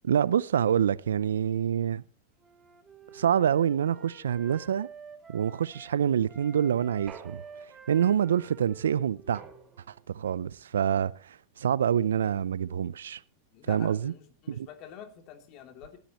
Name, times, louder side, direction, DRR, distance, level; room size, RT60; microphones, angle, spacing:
voice 1, 0.0-2.0 3.1-4.9 5.3-7.4 7.9-9.4 9.9-13.2 13.7-14.1 14.5-14.7, right 9 dB, 75° right, 0.6 m, -26 dB
Wind instrument woodwind instrument, 2.4-5.9 6.3-10.1, right 5 dB, 15° right, 2.9 m, -50 dB
sound 1, 7.1-8.1 9.3-10.2, right 8 dB, 35° right, 5.2 m, -50 dB
voice 2, 13.5-16.0, left 9 dB, 45° left, 3.2 m, -47 dB
20.0 x 12.5 x 3.1 m
hypercardioid pair, 95°, 0 cm